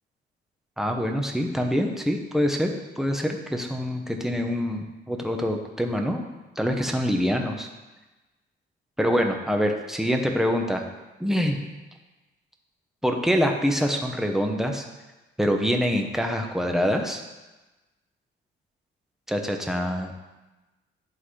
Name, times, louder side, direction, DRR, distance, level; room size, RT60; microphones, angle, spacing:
voice 1, 0.8-6.3 6.6-7.7 9.0-10.9 11.2-11.7 13.0-14.8 15.4-17.2 19.3-20.1, equal, ahead, 3 dB, 0.9 m, -25 dB
11.0 x 3.9 x 3.2 m, 1.1 s
cardioid pair, 90°, 20 cm